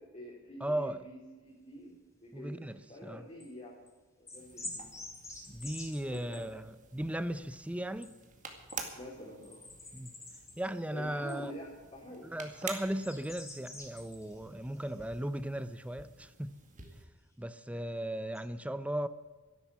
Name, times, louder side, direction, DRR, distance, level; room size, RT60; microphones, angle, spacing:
voice 1, 0.0-1.9 2.2-2.6 2.9-3.8 4.2-4.9 6.1-6.5 8.9-9.6 10.9-12.3, equal, 35° left, 3.3 m, -47 dB
voice 2, 0.6-1.0 2.3-3.3 5.5-8.2 9.9-10.1 10.6-11.5 12.2-16.6 17.4-19.1, right 1 dB, 5° right, 0.5 m, -37 dB
sound 1, 2.8-3.5 3.9-4.0 4.3-6.4 8.0-8.1 8.4-8.8 9.4-11.4 12.6-14.4 14.7-15.2 16.8-16.9 18.3-18.4, left 2 dB, 15° left, 3.6 m, -47 dB
sound 2, 4.3-17.1, right 5 dB, 40° right, 2.2 m, -50 dB
13.0 x 11.5 x 8.2 m
head